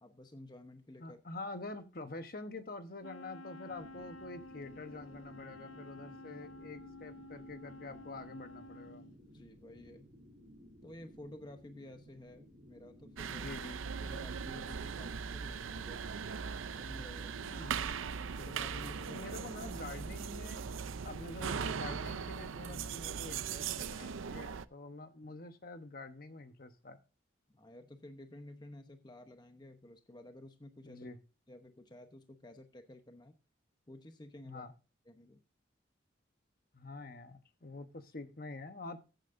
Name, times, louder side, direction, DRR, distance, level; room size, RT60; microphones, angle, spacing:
voice 1, 0.0-1.2 6.4-6.5 9.3-10.1 10.8-13.5 14.0-16.1 16.8-17.4 18.4-19.2 25.2-25.3 27.5-31.1 31.5-33.4 33.9-34.7 35.1-35.4 38.2-38.3, left 1 dB, 20° left, 6 dB, 0.9 m, -52 dB
voice 2, 1.0-9.0 13.3-13.8 17.4-17.8 18.9-20.6 21.0-27.0 30.8-31.2 34.4-34.7 36.7-39.0, left 2 dB, 45° left, 8 dB, 1.1 m, -47 dB
Wind instrument woodwind instrument, 3.0-9.1, left 2 dB, 85° left, 0.7 m, -51 dB
sound 1, 3.7-23.4, equal, 35° right, 2.8 m, -57 dB
sound 2, 13.2-24.7, right 6 dB, 90° right, 0.5 m, -39 dB
14.5 x 8.9 x 2.6 m, 0.31 s
head